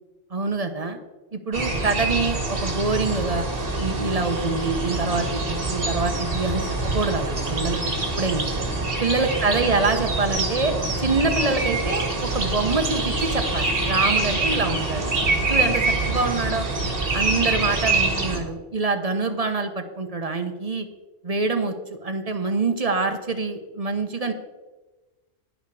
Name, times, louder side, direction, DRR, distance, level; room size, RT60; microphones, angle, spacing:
voice 1, 0.3-1.0 1.3-3.5 3.8-7.8 8.2-8.4 9.0-12.1 12.3-15.1 15.5-16.7 17.1-20.9 21.2-24.3, right 3 dB, 30° right, 7 dB, 1.0 m, -25 dB
sound 1, 1.5-18.4, right 2 dB, 50° right, 2.1 m, -25 dB
10.5 x 10.0 x 4.9 m, 1.2 s
omnidirectional pair, 1.3 m